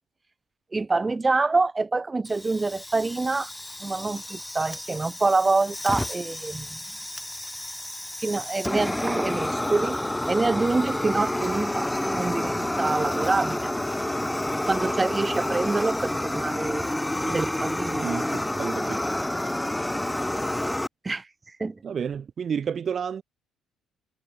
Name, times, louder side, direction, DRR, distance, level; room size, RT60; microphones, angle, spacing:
voice 1, 0.7-3.5 3.8-6.8 8.2-10.0 10.3-13.7 14.7-16.8 17.3-18.1 21.0-21.3 21.6-21.8, right 3 dB, 25° right, 4.9 m, -26 dB
Fire, 2.2-20.9, left 1 dB, 10° left, 3.9 m, -29 dB
voice 2, 18.0-19.1 21.8-23.2, right 7 dB, 50° right, 3.6 m, -31 dB
hypercardioid pair, 50°, 0 cm